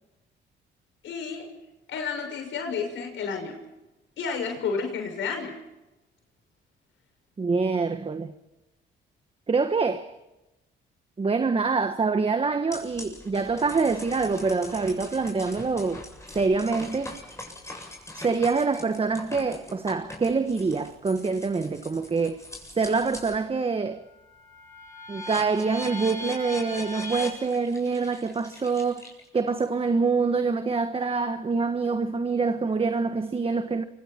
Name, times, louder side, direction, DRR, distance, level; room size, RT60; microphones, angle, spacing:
voice 1, 1.0-1.5 1.9-3.6 4.2-5.6, left 5 dB, 75° left, 6.4 m, -31 dB
voice 2, 7.4-8.3 9.5-10.1 11.2-16.0 16.3-17.2 18.2-22.4 22.8-24.0 25.1-29.1 29.3-33.8, right 4 dB, 30° right, 1.3 m, -25 dB
sound 1, 12.7-23.4 23.8-29.5, left 1 dB, 15° left, 7.6 m, -41 dB
29.5 x 25.5 x 4.5 m
cardioid pair, 90°, 20 cm